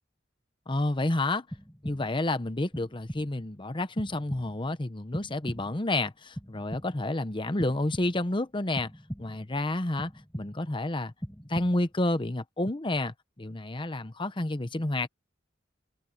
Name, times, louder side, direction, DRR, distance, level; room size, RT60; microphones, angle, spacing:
voice 1, 0.7-1.4 1.8-8.9 9.2-11.1 11.4-15.1, left 2 dB, 25° left, 0.9 m, -30 dB
sound 1, 1.5-2.3 2.7-3.5 4.0-4.8 5.1-5.9 6.4-7.2 7.6-8.4 8.8-9.6 10.0-10.8 11.2-12.0, equal, 10° left, 7.2 m, -41 dB
head